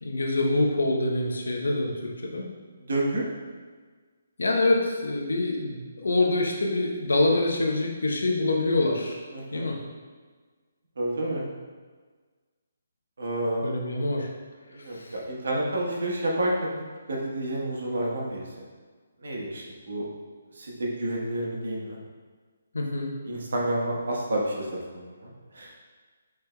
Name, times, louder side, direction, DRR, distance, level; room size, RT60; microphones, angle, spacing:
voice 1, 0.0-2.5 4.4-9.2 9.5-9.8 13.6-14.3 14.9-15.1 22.7-23.1, left 2 dB, 85° left, 0 dB, 0.8 m, -25 dB
voice 2, 2.8-3.3 9.3-9.7 11.0-11.4 13.2-13.6 14.7-18.5 19.2-20.0 20.6-22.0 23.2-25.7, right 1 dB, 75° right, -2 dB, 1.1 m, -30 dB
6.0 x 3.3 x 2.2 m, 1.5 s
hypercardioid pair, 160°, 0 cm